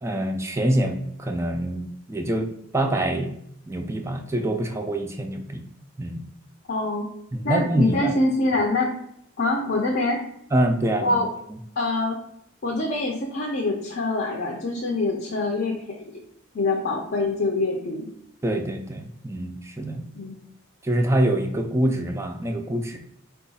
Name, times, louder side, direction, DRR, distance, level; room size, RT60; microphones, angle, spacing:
voice 1, 0.0-3.4 3.7-5.6 6.0-6.2 7.3-8.1 10.5-11.2 18.4-20.1 20.8-23.0, right 1 dB, 15° right, 4 dB, 0.3 m, -25 dB
voice 2, 6.7-7.1 7.4-8.9 9.4-10.2 11.0-11.3 11.8-12.2 12.6-16.0 16.5-18.1 20.1-20.4, left 2 dB, 50° left, 0 dB, 0.6 m, -25 dB
4.4 x 2.4 x 3.9 m, 0.73 s
head